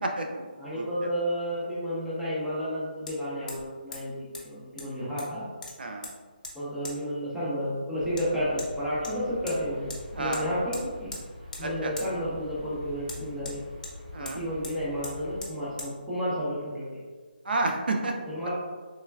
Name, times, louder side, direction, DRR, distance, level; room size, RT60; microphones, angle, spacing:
voice 1, 0.0-0.5 0.7-0.9 5.8-6.1 10.1-10.5 11.6-11.9 14.1-14.4 17.5-18.1, right 2 dB, 70° right, 2 dB, 0.4 m, -30 dB
voice 2, 0.6-4.1 4.4-5.4 6.5-9.9 10.2-11.1 11.6-13.6 14.3-17.0 18.3-18.5, equal, ahead, -12 dB, 0.5 m, -31 dB
Hammer, 1.1-1.2 3.1-3.2 3.5-3.7 3.9-4.0 4.3-4.4 4.8-5.3 5.6-6.1 6.4-6.5 6.8-7.0 8.2-8.3 8.6-8.7 9.0-9.6 9.9-10.0 10.3-10.4 10.7-11.2 11.5-11.7 12.0-12.1 13.1-13.9 14.3-14.4 14.6-14.7 15.0-15.1 15.4-15.5 15.8-15.9, left 2 dB, 50° left, 0.6 m, -40 dB
sound 1, 8.0-15.4, left 2 dB, 35° right, 0.8 m, -44 dB
3.1 x 2.2 x 2.2 m, 1.5 s
figure-of-eight pair, 165°, 5 cm